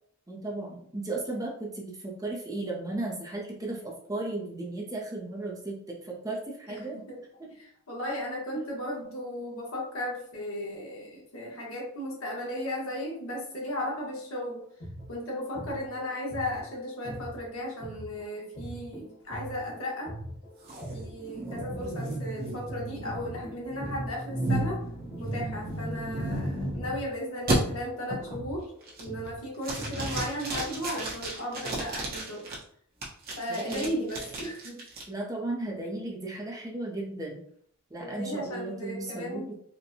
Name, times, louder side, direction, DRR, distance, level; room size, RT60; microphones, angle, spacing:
voice 1, 0.3-7.0 7.4-7.5 21.4-21.8 33.5-33.9 35.1-37.4 37.9-39.5, right 2 dB, 15° right, -2 dB, 0.6 m, -35 dB
voice 2, 6.7-7.2 7.5-14.7 15.1-20.1 20.9-24.8 25.2-28.7 29.0-32.5 33.3-34.8 38.0-39.5, left 1 dB, 90° left, -3 dB, 1.3 m, -35 dB
sound 1, 14.6-22.3 22.7-30.3, right 1 dB, 55° left, 1.0 m, -43 dB
sound 2, 20.7-27.0 27.5-27.6 28.1-28.4 28.8-29.3 29.6-32.6 33.0-35.0, right 1 dB, 45° right, 0.9 m, -33 dB
4.3 x 2.2 x 2.7 m, 0.65 s
head